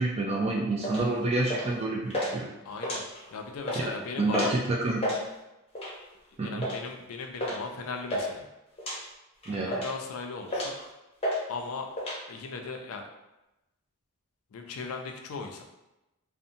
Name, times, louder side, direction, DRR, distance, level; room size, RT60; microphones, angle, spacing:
voice 1, 0.0-2.5 4.2-5.0 6.4-6.6 9.5-9.7, right 2 dB, 30° right, -2 dB, 0.3 m, -28 dB
sound 1, 0.8-1.0 1.5-1.8 2.1-2.3 2.7-3.3 3.6-3.8 4.3-4.6 4.9-5.2 5.7-6.0 6.6-6.8 7.4-7.6 7.8-8.3 8.8-9.0 9.4-10.0 10.5-10.8 11.2-11.4 11.7-12.2, equal, 30° left, 0.6 m, -31 dB
voice 2, 2.6-3.0 3.3-4.6 6.4-8.5 9.5-10.8 11.5-11.9 12.3-13.1 14.5-15.6, left 4 dB, 80° left, 4 dB, 0.4 m, -38 dB
2.7 x 2.1 x 2.6 m, 0.95 s
head